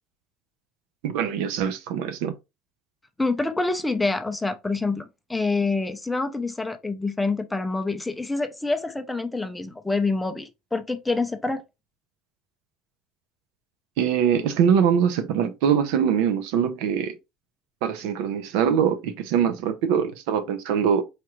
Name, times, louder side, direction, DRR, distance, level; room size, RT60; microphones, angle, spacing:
voice 1, 1.0-2.3 14.0-17.1 17.8-21.0, right 8 dB, 75° right, 0.6 m, -23 dB
voice 2, 3.2-11.6, left 3 dB, 10° left, 0.5 m, -26 dB
4.4 x 2.4 x 3.0 m
supercardioid pair, 120°, 0 cm